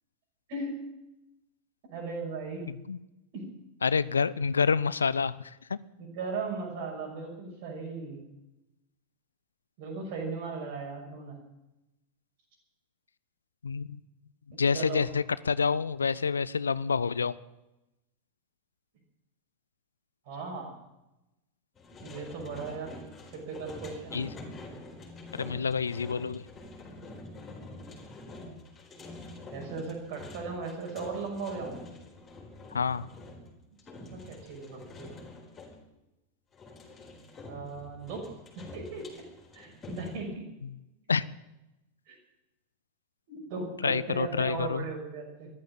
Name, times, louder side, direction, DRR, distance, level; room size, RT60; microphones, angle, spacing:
voice 1, 0.5-0.8 1.9-2.7 3.3-3.4 6.0-8.2 9.8-11.4 14.7-15.0 20.2-20.7 22.0-23.0 23.3-24.2 29.5-31.7 34.1-35.2 37.5-38.3 38.5-39.2 39.5-40.5 42.1-42.2 43.3-45.5, right 4 dB, 50° right, 2 dB, 6.1 m, -37 dB
voice 2, 2.7-3.0 3.8-5.8 13.6-14.0 14.6-17.4 24.1-24.3 25.4-26.4 32.7-33.1 40.6-40.7 41.1-41.2 43.8-44.8, left 5 dB, 75° left, 19 dB, 0.5 m, -28 dB
sound 1, 21.8-35.8 36.5-40.2, left 2 dB, 20° left, 4.4 m, -46 dB
14.0 x 11.5 x 8.7 m, 0.95 s
figure-of-eight pair, 90°, 0 cm